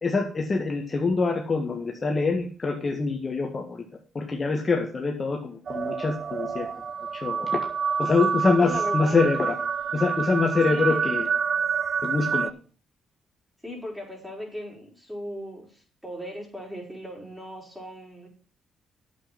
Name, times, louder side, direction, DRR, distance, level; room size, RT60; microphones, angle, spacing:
voice 1, 0.0-3.8 4.2-6.7 7.1-7.5 8.0-9.5 9.9-11.3 12.0-12.5, left 4 dB, 35° left, 2 dB, 1.9 m, -25 dB
sound 1, 5.7-12.5, right 6 dB, 50° right, 0.4 m, -28 dB
voice 2, 8.6-9.2 10.7-11.0 13.6-18.3, left 1 dB, 5° right, -1 dB, 5.5 m, -37 dB
8.7 x 7.7 x 6.1 m, 0.40 s
cardioid pair, 90°, 0 cm